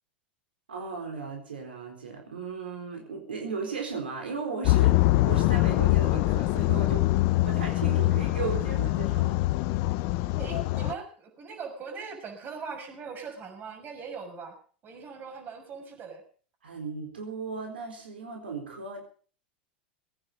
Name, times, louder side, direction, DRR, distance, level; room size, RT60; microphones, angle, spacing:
voice 1, 0.7-5.0 5.2-7.1 7.5-9.4 16.6-19.0, right 4 dB, 90° right, 2 dB, 4.2 m, -36 dB
sound 1, 4.6-10.9, left 18 dB, 55° left, 0.7 m, -24 dB
voice 2, 10.4-14.6 14.8-16.2, right 5 dB, 35° right, 4 dB, 6.4 m, -40 dB
21.5 x 9.8 x 5.4 m, 0.43 s
hypercardioid pair, 95°, 5 cm